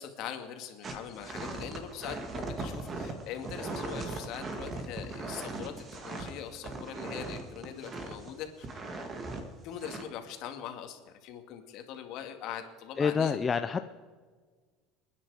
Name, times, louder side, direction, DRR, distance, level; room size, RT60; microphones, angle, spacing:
voice 1, 0.0-5.7 6.0-8.7 9.6-13.4, left 9 dB, 55° left, 6 dB, 2.1 m, -42 dB
sound 1, 0.8-8.3 8.6-9.4 9.8-10.0, right 3 dB, 25° right, 2.1 m, -39 dB
voice 2, 13.0-13.8, left 6 dB, 20° left, 9 dB, 0.5 m, -27 dB
29.5 x 9.9 x 4.9 m, 1.5 s
cardioid pair, 145°, 0 cm